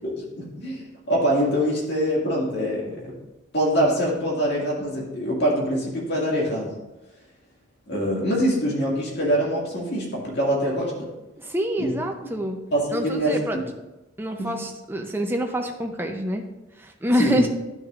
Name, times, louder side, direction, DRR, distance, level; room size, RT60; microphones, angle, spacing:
voice 1, 0.0-3.1 3.5-6.7 7.9-11.1 11.8-11.9 12.7-13.4 14.4-14.5 17.2-17.5, equal, 60° left, -3 dB, 2.1 m, -24 dB
voice 2, 11.4-12.6 12.9-13.6 14.2-16.4 16.8-17.5, equal, 10° right, 3 dB, 0.6 m, -26 dB
10.5 x 6.3 x 2.5 m, 1.0 s
head